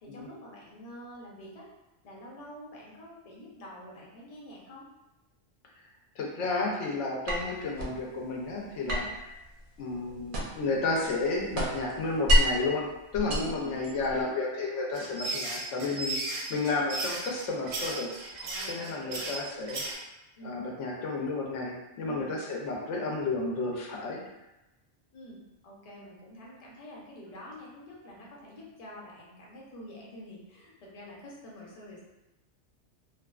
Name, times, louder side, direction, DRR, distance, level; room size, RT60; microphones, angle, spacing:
voice 1, 0.0-1.7 2.0-4.9 8.8-9.1 13.3-14.4 18.4-19.3 20.4-20.6 22.0-22.3 25.1-25.4 25.6-32.0, equal, 40° left, -4 dB, 0.6 m, -47 dB
voice 2, 6.2-9.0 9.8-12.9 13.1-18.2 18.7-19.8 20.4-24.2, left 3 dB, 90° left, -1 dB, 0.9 m, -32 dB
sound 1, 7.3-8.0 8.9-10.7 11.1-12.7 13.1-14.2, equal, 60° right, 0.6 m, -28 dB
sound 2, 14.9-19.9, right 2 dB, 85° right, 0.9 m, -35 dB
2.6 x 2.3 x 2.2 m, 0.95 s
omnidirectional pair, 1.2 m